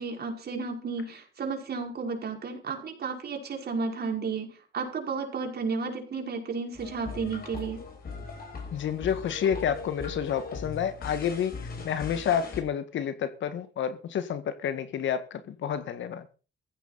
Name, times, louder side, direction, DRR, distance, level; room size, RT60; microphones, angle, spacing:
voice 1, 0.0-7.8, right 4 dB, 55° right, 5.4 m, -33 dB
sound 1, 6.7-12.6, left 4 dB, 50° left, 6.2 m, -39 dB
voice 2, 8.7-11.5 11.8-16.3, left 8 dB, 70° left, 1.8 m, -29 dB
16.0 x 15.0 x 4.2 m
cardioid pair, 90°, 20 cm